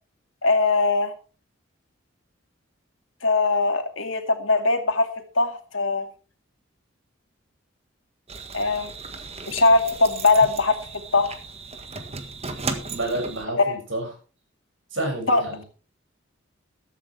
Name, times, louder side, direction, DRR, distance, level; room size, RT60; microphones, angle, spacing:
voice 1, 0.4-1.1 3.2-5.1 5.4-6.1 8.5-8.9 9.5-10.8 11.1-11.4 13.6-13.8 15.3-15.6, left 3 dB, 85° left, 6 dB, 2.5 m, -21 dB
sound 1, 8.3-13.4, right 4 dB, 30° right, 1.6 m, -35 dB
voice 2, 12.9-14.1 14.9-15.6, right 2 dB, 75° right, 3 dB, 7.0 m, -29 dB
14.5 x 12.5 x 3.5 m, 0.35 s
head